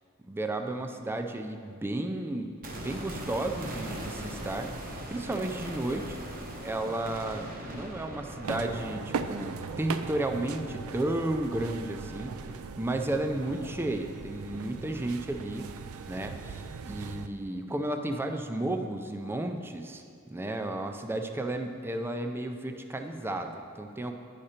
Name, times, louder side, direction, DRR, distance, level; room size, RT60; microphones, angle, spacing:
voice 1, 0.3-4.7 5.1-6.2 6.6-12.4 12.8-15.7 16.1-24.1, right 1 dB, 10° right, 5 dB, 0.4 m, -33 dB
sound 1, 2.6-12.6 12.9-13.0, right 1 dB, 40° right, 0.8 m, -41 dB
sound 2, 8.4-17.3, right 5 dB, 80° right, 0.4 m, -39 dB
9.8 x 5.0 x 4.3 m, 2.3 s
head